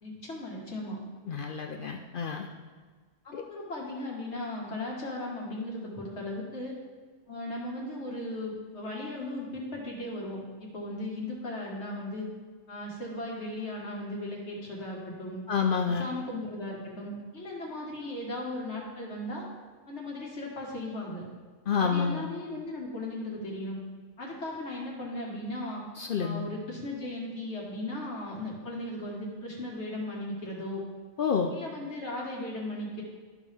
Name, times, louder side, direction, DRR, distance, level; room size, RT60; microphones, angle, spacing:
voice 1, 0.0-1.0 3.2-6.8 7.3-12.3 12.7-15.4 15.9-19.5 19.9-21.2 21.8-23.8 24.2-25.8 26.2-30.8 31.5-33.0, left 1 dB, 75° left, -3 dB, 2.1 m, -37 dB
voice 2, 1.3-2.5 3.3-3.4 15.5-16.1 21.7-22.3 26.0-26.5 31.2-31.5, left 6 dB, 60° left, 3 dB, 0.7 m, -29 dB
12.5 x 5.3 x 3.5 m, 1.5 s
omnidirectional pair, 1.2 m